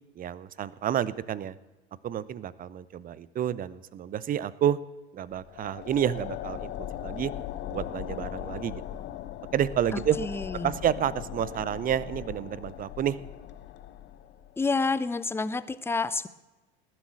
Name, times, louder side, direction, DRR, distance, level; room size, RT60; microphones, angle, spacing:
voice 1, 0.2-1.6 2.0-4.8 5.1-7.3 7.6-9.0 9.5-10.2 10.6-13.2, right 10 dB, 25° right, 19 dB, 0.7 m, -29 dB
sound 1, 5.3-14.6, left 11 dB, 35° left, 0.8 m, -39 dB
voice 2, 9.9-10.7 14.6-16.3, left 4 dB, 5° left, 16 dB, 0.6 m, -29 dB
19.0 x 7.7 x 8.6 m, 1.1 s
figure-of-eight pair, 75°, 32 cm